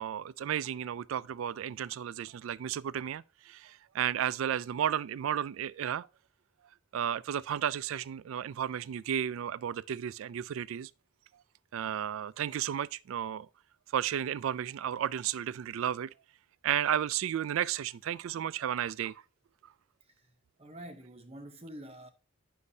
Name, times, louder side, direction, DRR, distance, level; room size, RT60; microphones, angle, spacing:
voice 1, 0.0-6.1 6.9-10.9 11.7-13.5 13.9-16.1 16.6-19.1, right 9 dB, 80° right, 0.3 m, -33 dB
voice 2, 20.0-20.3 20.6-22.1, right 1 dB, 30° right, 0.7 m, -47 dB
9.7 x 6.3 x 2.7 m
head